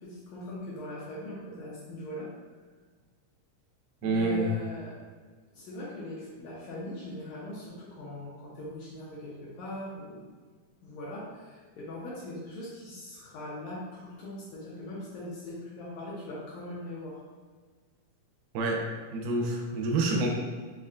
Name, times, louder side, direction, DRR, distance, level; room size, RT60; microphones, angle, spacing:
voice 1, 0.0-2.3 4.0-5.0 5.5-10.2 10.8-17.2, left 1 dB, 75° left, -6 dB, 1.8 m, -40 dB
voice 2, 4.0-4.5 18.5-20.3, right 2 dB, 85° right, 0 dB, 2.2 m, -28 dB
5.4 x 2.1 x 2.4 m, 1.5 s
omnidirectional pair, 3.7 m